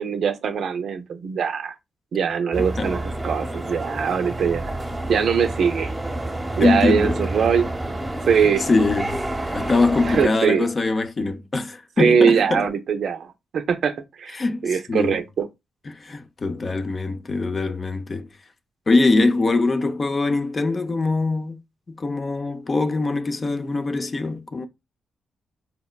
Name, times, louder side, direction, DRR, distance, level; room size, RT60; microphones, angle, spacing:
voice 1, 0.0-1.7 2.1-4.7 5.1-5.9 6.6-7.7 8.3-8.6 10.0-10.7 12.0-14.3 14.6-15.5, right 6 dB, 70° right, 0.4 m, -22 dB
sound 1, 2.5-10.3, right 1 dB, 20° right, 0.8 m, -29 dB
voice 2, 6.6-7.2 8.4-9.2 9.5-12.7 14.3-15.2 15.9-18.3 18.9-21.6 21.9-24.7, left 3 dB, 45° left, 0.5 m, -22 dB
3.9 x 2.1 x 2.2 m
supercardioid pair, 50°, 0 cm